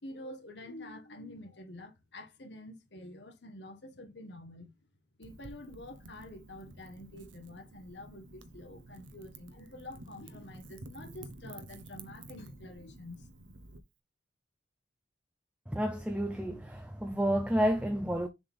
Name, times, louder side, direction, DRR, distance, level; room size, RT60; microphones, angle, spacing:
voice 1, 0.0-4.7 5.2-13.3, left 1 dB, 70° left, 1.4 m, -48 dB
Wind / Fire, 5.2-13.8, right 2 dB, 90° right, 0.9 m, -51 dB
voice 2, 15.7-18.3, equal, 5° right, 0.5 m, -30 dB
6.9 x 3.5 x 4.2 m
head